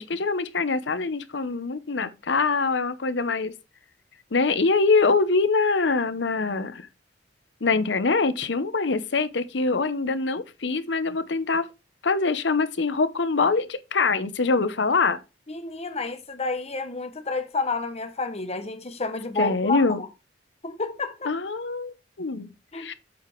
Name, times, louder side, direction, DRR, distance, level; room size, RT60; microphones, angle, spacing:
voice 1, 0.0-3.5 4.3-6.9 7.6-11.6 12.0-15.2 19.4-20.0 21.3-22.9, left 4 dB, 70° left, 0.8 m, -24 dB
voice 2, 15.5-20.1 20.6-21.3 22.7-22.9, left 3 dB, 35° left, 1.1 m, -30 dB
8.1 x 5.0 x 4.5 m
head